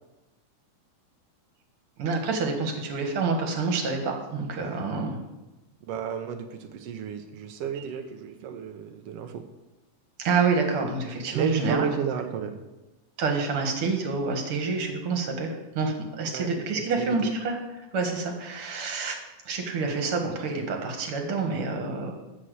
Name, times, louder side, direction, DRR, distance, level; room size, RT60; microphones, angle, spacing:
voice 1, 2.0-5.2 7.8-7.9 10.2-11.9 13.2-19.2 19.5-22.1, right 4 dB, 50° right, 3 dB, 2.1 m, -28 dB
voice 2, 5.9-9.4 11.3-12.6 16.3-16.5 17.0-17.3, right 7 dB, 85° right, 5 dB, 1.3 m, -32 dB
12.5 x 4.4 x 8.0 m, 1.1 s
omnidirectional pair, 3.8 m